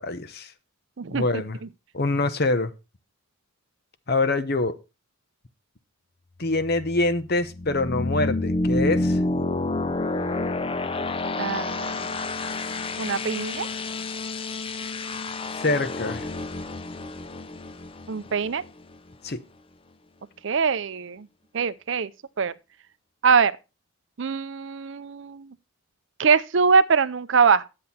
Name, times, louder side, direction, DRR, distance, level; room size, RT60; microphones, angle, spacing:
voice 1, 0.0-0.5 1.1-1.6 1.9-2.7 4.1-4.7 6.4-9.2 15.6-16.3 19.2-19.4, left 2 dB, 45° left, 0.9 m, -25 dB
sound 1, 6.5-19.1, left 2 dB, 25° left, 0.4 m, -29 dB
voice 2, 11.4-12.2 13.0-13.7 18.1-18.6 20.4-21.3 21.5-22.1 22.4-22.5 23.2-23.6 24.2-25.5 26.2-27.6, right 5 dB, 55° right, 0.5 m, -22 dB
10.5 x 7.6 x 4.1 m
head